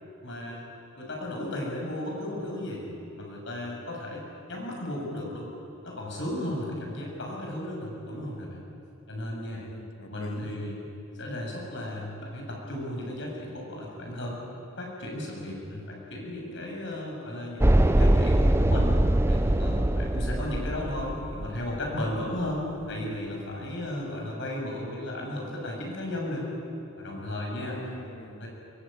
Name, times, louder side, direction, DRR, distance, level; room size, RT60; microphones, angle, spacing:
voice 1, 0.2-0.7 1.0-2.8 3.2-4.2 4.5-5.5 5.8-8.6 9.1-9.7 10.1-10.8 11.1-14.4 14.8-19.0 19.3-26.4 27.0-27.8 28.4-28.5, left 1 dB, 60° left, -1 dB, 7.4 m, -35 dB
voice 2, 9.4-10.8 27.6-28.5, left 1 dB, 85° left, 6 dB, 1.8 m, -44 dB
sound 1, 17.6-21.9, right 1 dB, 10° right, 0.5 m, -23 dB
23.0 x 21.0 x 9.1 m, 2.7 s
head